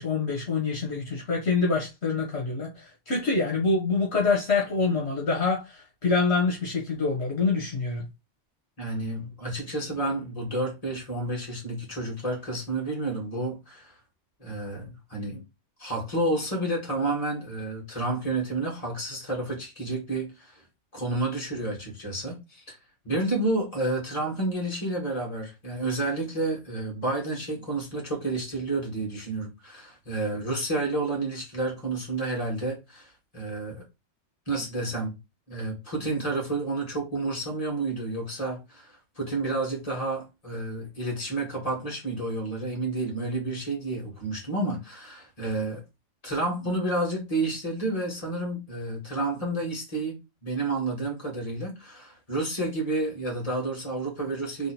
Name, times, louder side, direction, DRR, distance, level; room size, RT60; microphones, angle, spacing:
voice 1, 0.0-8.0, left 4 dB, 65° left, 1.7 m, -26 dB
voice 2, 8.8-13.9 14.4-15.4 15.8-20.6 20.9-22.8 23.0-33.8 34.5-35.2 35.5-45.8 46.2-54.7, right 2 dB, 30° left, 2.2 m, -30 dB
3.8 x 3.2 x 4.3 m
omnidirectional pair, 1.2 m